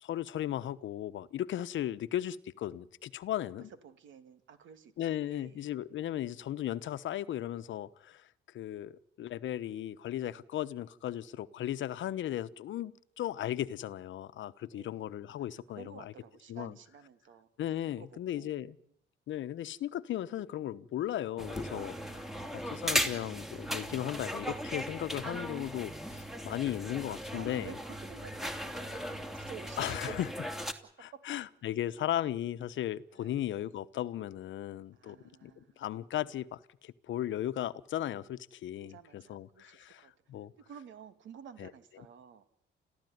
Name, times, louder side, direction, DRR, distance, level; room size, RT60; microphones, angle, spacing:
voice 1, 0.0-3.7 5.0-8.3 8.5-16.1 16.5-16.7 17.6-18.8 19.3-27.8 29.8-30.3 31.0-35.2 35.4-40.5 41.6-41.7, left 12 dB, 75° left, 1.0 m, -36 dB
voice 2, 3.8-5.7 14.7-15.0 15.4-17.5 18.0-18.5 27.1-30.2 31.1-31.2 33.1-33.4 34.9-35.8 38.9-40.1 40.6-42.4, right 7 dB, 75° right, 2.6 m, -52 dB
sound 1, 21.4-30.7, equal, ahead, 2.6 m, -37 dB
30.0 x 14.5 x 9.5 m
cardioid pair, 90°, 20 cm